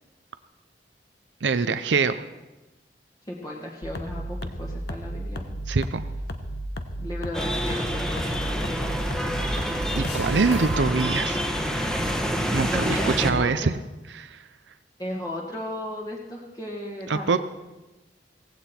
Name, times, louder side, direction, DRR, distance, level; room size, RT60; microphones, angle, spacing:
voice 1, 1.4-2.2 5.7-6.1 9.9-11.4 12.5-13.7 14.1-14.4 17.1-17.4, right 4 dB, 85° right, 11 dB, 0.6 m, -24 dB
voice 2, 3.3-5.4 7.0-9.4 12.7-13.7 15.0-17.4, left 1 dB, 20° left, -3 dB, 1.8 m, -35 dB
sound 1, 3.8-10.8, equal, 65° left, 1.2 m, -33 dB
sound 2, 7.3-13.3, equal, 5° left, 1.4 m, -27 dB
17.0 x 16.0 x 4.5 m, 1.1 s
head